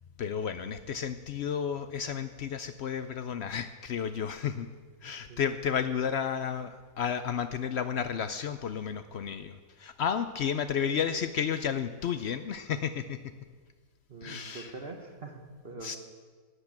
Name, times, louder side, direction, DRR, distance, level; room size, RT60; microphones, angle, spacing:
voice 1, 0.2-4.7 5.0-13.3 14.2-14.7 15.8-16.0, left 7 dB, 85° left, 11 dB, 0.5 m, -32 dB
voice 2, 14.1-16.0, right 3 dB, 40° right, 4 dB, 1.3 m, -44 dB
12.0 x 8.1 x 8.6 m, 1.5 s
omnidirectional pair, 1.7 m